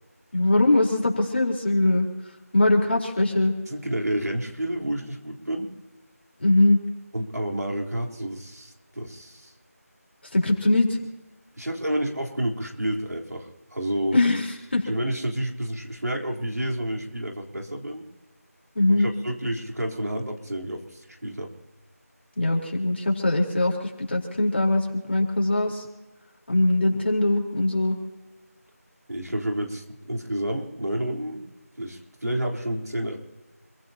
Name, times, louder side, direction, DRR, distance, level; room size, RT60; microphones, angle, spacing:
voice 1, 0.3-2.1 2.5-3.5 6.4-6.8 10.3-10.9 14.1-14.5 14.7-14.8 18.8-19.1 22.4-25.8 26.5-28.0, left 2 dB, 40° left, 0 dB, 4.1 m, -21 dB
voice 2, 3.7-5.7 7.1-9.5 11.6-14.2 14.8-18.1 18.9-21.5 29.1-31.4 31.8-33.2, right 1 dB, 90° right, 1 dB, 3.9 m, -30 dB
27.5 x 16.0 x 2.9 m, 1.1 s
figure-of-eight pair, 175°, 9 cm